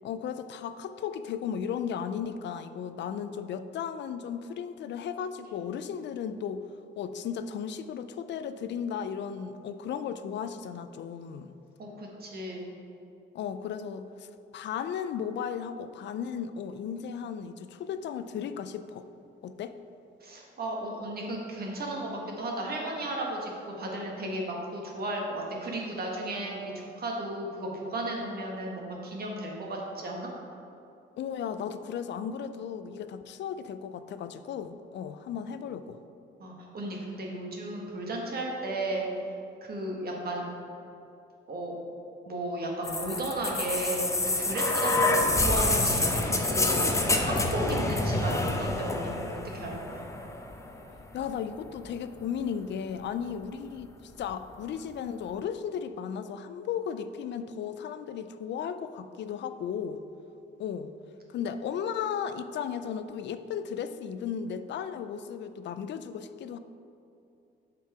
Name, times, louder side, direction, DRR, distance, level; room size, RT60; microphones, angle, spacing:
voice 1, 0.0-6.6 7.0-11.5 13.3-19.1 19.4-19.8 31.2-36.0 51.1-60.0 60.6-60.9 61.3-66.6, left 7 dB, 65° left, 11 dB, 0.4 m, -35 dB
voice 2, 11.8-12.7 20.2-30.3 36.4-39.1 39.6-40.5 41.5-41.8 42.3-46.9 47.2-50.0, right 1 dB, 50° right, -1 dB, 1.5 m, -34 dB
sound 1, 42.8-50.8 51.8-51.9, left 2 dB, 15° left, 0.7 m, -27 dB
7.3 x 4.6 x 4.8 m, 2.7 s
cardioid pair, 90°, 20 cm